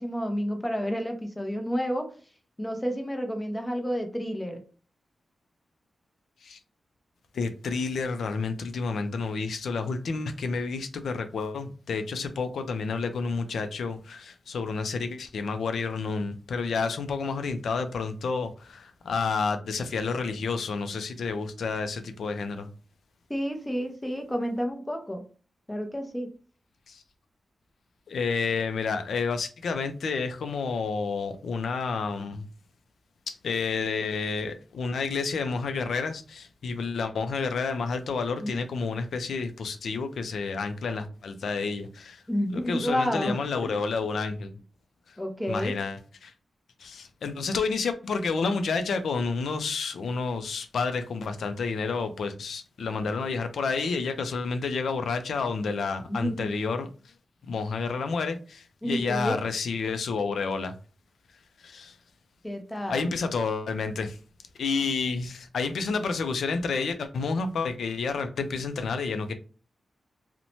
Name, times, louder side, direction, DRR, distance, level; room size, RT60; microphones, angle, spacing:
voice 1, 0.0-2.1 2.6-4.6 23.3-25.2 25.7-26.3 38.4-38.6 42.3-43.7 45.2-45.8 56.0-56.5 58.8-59.4 62.4-63.1, equal, 10° left, 0.6 m, -30 dB
voice 2, 7.3-22.7 26.9-27.0 28.1-32.4 33.3-42.2 42.5-44.5 45.1-45.2 45.5-46.3 46.8-56.9 57.5-60.7 61.6-62.0 62.9-64.2 64.6-69.3, left 4 dB, 85° left, 0.4 m, -30 dB
2.6 x 2.1 x 2.9 m
wide cardioid pair, 105°, 0 cm